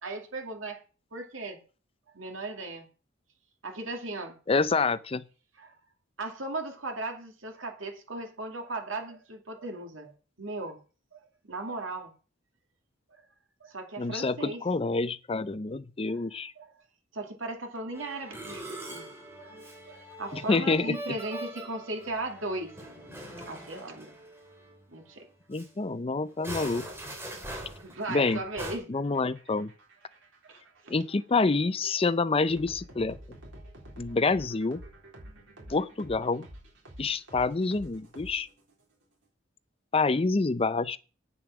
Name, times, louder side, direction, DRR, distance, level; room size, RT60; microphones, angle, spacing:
voice 1, 0.0-0.8 1.1-1.6 2.1-2.9 3.6-4.4 5.6-5.7 6.2-10.1 10.4-10.8 11.1-12.1 13.1-13.2 13.6-14.6 16.0-16.2 16.6-16.7 17.1-19.1 19.4-22.7 23.4-24.2 24.9-25.3 27.7-29.0 30.5-30.6, right 2 dB, 80° right, 2.5 m, -37 dB
voice 2, 4.5-5.2 14.0-16.5 20.3-21.0 25.5-26.9 28.1-28.4 28.9-29.7 30.9-33.2 34.0-34.8 35.7-36.5 37.0-38.5 39.9-41.0, left 3 dB, 30° left, 0.5 m, -27 dB
Musical instrument, 17.9-24.8 25.1-25.2 25.5-25.7 26.3-28.8, right 1 dB, 10° right, 3.0 m, -42 dB
sound 1, 29.0-38.8, right 1 dB, 65° right, 3.8 m, -49 dB
8.7 x 6.8 x 6.1 m
head